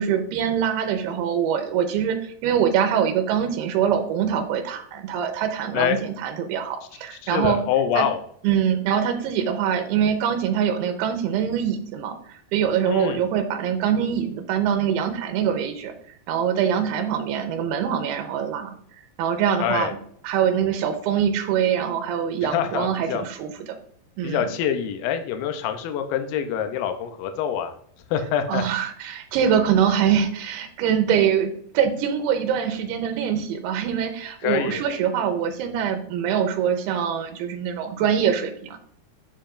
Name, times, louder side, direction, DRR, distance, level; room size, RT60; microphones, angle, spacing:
voice 1, 0.0-7.6 8.0-8.1 8.4-18.7 19.2-20.0 20.2-23.5 24.2-24.5 28.5-38.8, right 8 dB, 85° right, 5 dB, 2.7 m, -24 dB
voice 2, 7.1-8.2 12.9-13.2 19.6-19.9 22.4-23.2 24.2-27.7 28.1-28.7 34.4-34.8, left 9 dB, 80° left, 7 dB, 2.1 m, -25 dB
7.3 x 6.7 x 2.5 m, 0.62 s
omnidirectional pair, 4.7 m